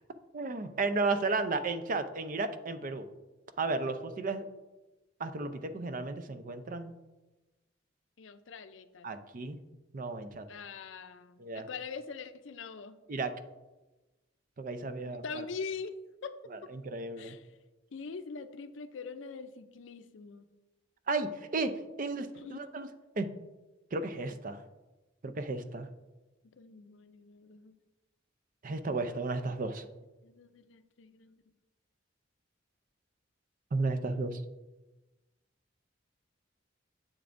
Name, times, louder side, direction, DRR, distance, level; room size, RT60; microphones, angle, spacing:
voice 1, 0.3-3.1 3.6-4.4 5.2-6.9 9.0-9.6 9.9-10.5 11.4-11.7 13.1-13.3 14.6-15.4 16.5-17.4 21.1-21.7 22.0-22.9 23.2-23.3 23.9-24.6 25.2-25.9 28.6-29.9 33.7-34.4, right 3 dB, 45° right, 10 dB, 0.5 m, -33 dB
voice 2, 8.2-9.1 10.5-13.0 15.1-15.9 16.2-16.3 17.2-17.5 17.9-20.5 22.3-22.6 26.6-27.7 30.2-31.4, left 5 dB, 75° left, 11 dB, 0.5 m, -43 dB
10.0 x 7.3 x 2.6 m, 1.1 s
head